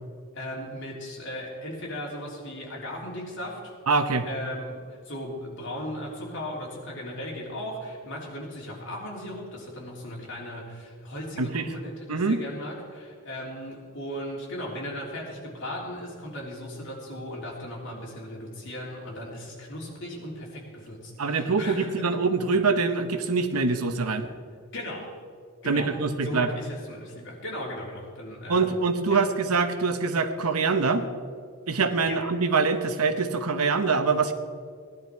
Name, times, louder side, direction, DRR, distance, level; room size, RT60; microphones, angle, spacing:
voice 1, 0.3-3.7 4.2-22.1 24.7-25.2 25.6-25.9 26.2-28.7 29.1-29.3 32.0-32.2, equal, 60° left, -3 dB, 3.5 m, -37 dB
voice 2, 3.9-4.3 11.4-11.7 12.1-12.4 21.2-24.3 25.7-26.5 28.5-31.1 31.7-34.3, right 4 dB, 90° right, 9 dB, 1.0 m, -24 dB
17.0 x 11.0 x 4.7 m, 2.1 s
head